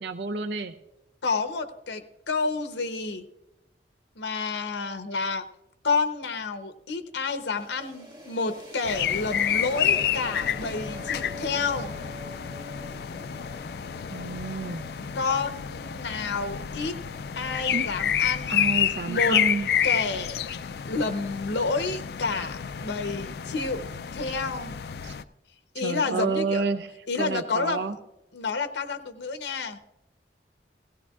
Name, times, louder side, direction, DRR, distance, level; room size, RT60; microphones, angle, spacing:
voice 1, 0.0-0.7 14.1-14.8 17.7-17.9 18.5-19.7 25.0-25.2 25.8-26.9 27.2-27.9, right 4 dB, 75° right, 9 dB, 0.6 m, -29 dB
voice 2, 1.2-3.2 4.2-5.4 5.8-11.9 15.1-17.0 17.4-18.7 19.1-19.4 19.8-20.4 20.8-23.8 24.1-24.7 25.7-26.7 27.1-28.0 28.3-29.8, left 4 dB, 85° left, 8 dB, 0.8 m, -29 dB
sound 1, 7.3-19.0, left 1 dB, 25° right, 1.5 m, -45 dB
sound 2, 8.8-25.2, left 9 dB, 60° left, 0.3 m, -29 dB
17.0 x 16.0 x 2.4 m, 0.91 s
head